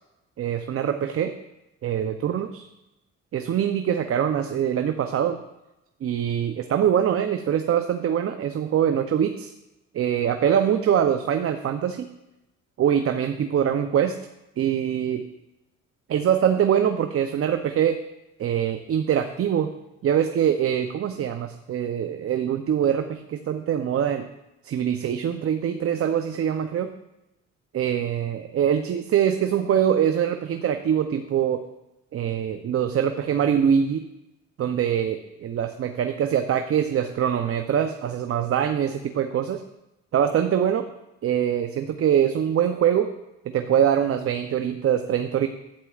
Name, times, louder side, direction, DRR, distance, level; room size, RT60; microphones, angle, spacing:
voice 1, 0.4-1.3 1.8-2.7 3.3-5.4 6.0-9.5 9.9-12.1 12.8-14.2 14.6-15.2 16.1-18.0 18.4-19.7 20.0-24.3 24.6-26.9 27.7-31.6 32.1-34.0 34.6-39.6 40.1-40.9 41.2-43.1 43.5-45.5, right 9 dB, 50° right, 7 dB, 0.6 m, -23 dB
11.5 x 8.9 x 2.4 m, 0.93 s
cardioid pair, 90°, 30 cm